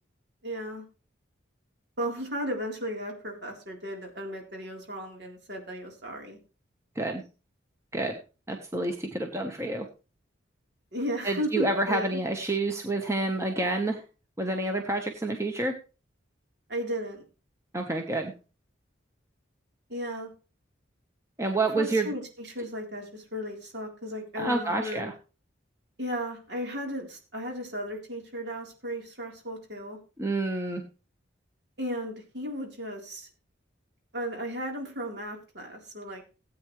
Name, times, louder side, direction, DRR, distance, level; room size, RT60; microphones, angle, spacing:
voice 1, 0.4-0.8 2.0-6.4 10.9-12.2 16.7-17.3 19.9-20.3 21.7-25.1 26.0-30.0 31.8-33.3 34.1-36.2, equal, 60° right, 1 dB, 3.7 m, -35 dB
voice 2, 8.5-9.9 11.2-14.0 14.4-15.7 17.7-18.3 21.4-22.1 24.4-25.1 30.2-30.8, right 2 dB, 15° right, 3 dB, 1.1 m, -28 dB
17.0 x 8.7 x 3.2 m, 0.33 s
head